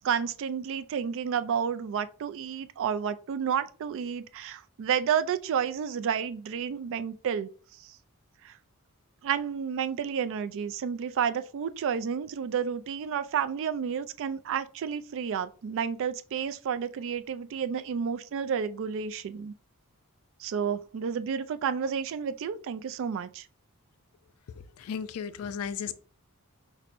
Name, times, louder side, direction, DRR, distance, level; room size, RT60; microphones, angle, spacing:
voice 1, 0.0-7.5 7.8-7.9 8.4-8.5 9.2-19.5 20.4-23.5, right 7 dB, 60° right, 0.3 m, -31 dB
voice 2, 24.6-25.9, left 7 dB, 70° left, 0.4 m, -35 dB
5.8 x 2.1 x 2.5 m
head